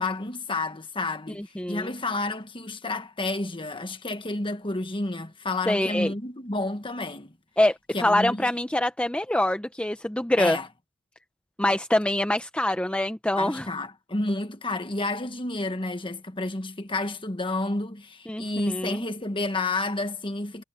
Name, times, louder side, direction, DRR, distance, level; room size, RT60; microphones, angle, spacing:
voice 1, 0.0-7.4 7.9-8.5 10.4-10.7 13.4-20.6, left 2 dB, 25° left, 1.5 m, -30 dB
voice 2, 1.4-1.9 5.7-6.1 7.6-10.6 11.6-13.7 18.3-19.1, left 1 dB, 5° left, 0.6 m, -25 dB
head